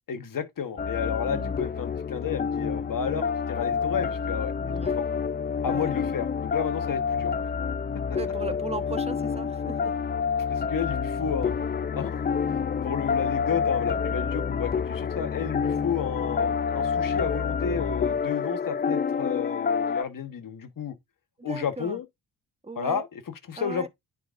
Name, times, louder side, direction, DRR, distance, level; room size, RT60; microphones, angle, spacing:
voice 1, 0.1-4.5 4.8-5.0 5.6-7.4 10.5-11.5 11.9-20.9 21.4-22.0 22.8-23.9, left 7 dB, 50° left, 1.3 m, -32 dB
sound 1, 0.8-20.0, left 6 dB, 25° left, 0.5 m, -28 dB
voice 2, 4.6-5.0 5.7-5.9 8.1-9.9 21.4-22.0 22.6-23.0 23.6-23.9, right 3 dB, 15° right, 1.1 m, -37 dB
9.9 x 3.9 x 2.5 m
supercardioid pair, 60°, 43 cm